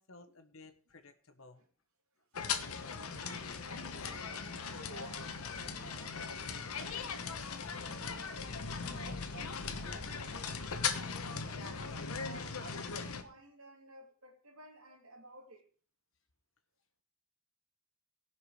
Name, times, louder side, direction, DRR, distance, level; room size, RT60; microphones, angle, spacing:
voice 1, 0.0-1.6, left 3 dB, 75° left, 1.3 m, -56 dB
sound 1, 2.3-13.2, left 5 dB, 90° left, 1.1 m, -39 dB
voice 2, 3.1-10.3 10.6-11.9 12.2-15.7, right 2 dB, 80° right, 2.6 m, -55 dB
18.0 x 6.1 x 4.9 m
head